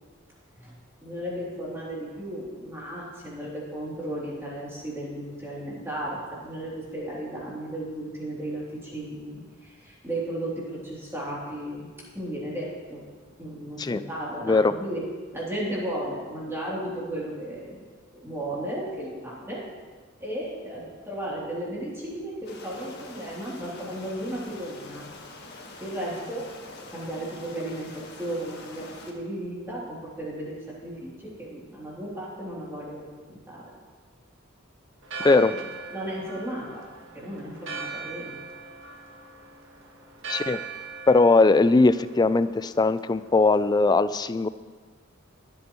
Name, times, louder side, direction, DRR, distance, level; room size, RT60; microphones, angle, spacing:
voice 1, 1.0-11.9 12.1-13.0 13.4-15.0 15.3-17.8 18.1-19.6 20.2-25.1 25.8-26.5 26.8-33.6 35.5-35.6 35.9-36.8 37.1-38.4, right 1 dB, 10° right, -7 dB, 3.1 m, -35 dB
sound 1, 22.5-29.1, left 2 dB, 55° left, 1.7 m, -45 dB
Church bell, 35.0-43.9, right 4 dB, 70° right, 1.6 m, -40 dB
voice 2, 40.3-40.6 41.1-44.5, left 3 dB, 20° left, 14 dB, 0.3 m, -20 dB
24.0 x 8.2 x 3.1 m, 1.5 s
head